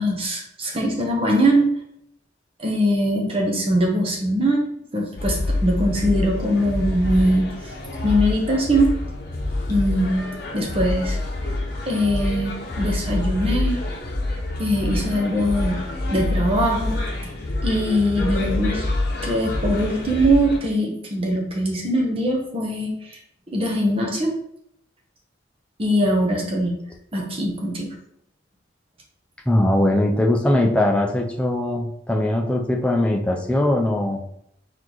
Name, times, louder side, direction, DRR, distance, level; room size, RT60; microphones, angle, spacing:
voice 1, 0.0-1.7 2.6-4.6 4.9-7.4 8.0-8.9 9.7-10.3 10.5-11.2 11.9-13.8 14.6-15.8 16.1-17.3 17.6-18.9 19.2-23.2 23.5-24.3 25.8-26.7 27.1-27.9, equal, 30° right, 0 dB, 0.9 m, -21 dB
sound 1, 5.2-20.6, left 2 dB, 55° left, 0.9 m, -27 dB
voice 2, 29.5-34.2, left 1 dB, 5° left, 0 dB, 0.5 m, -20 dB
4.2 x 3.7 x 3.0 m, 0.72 s
head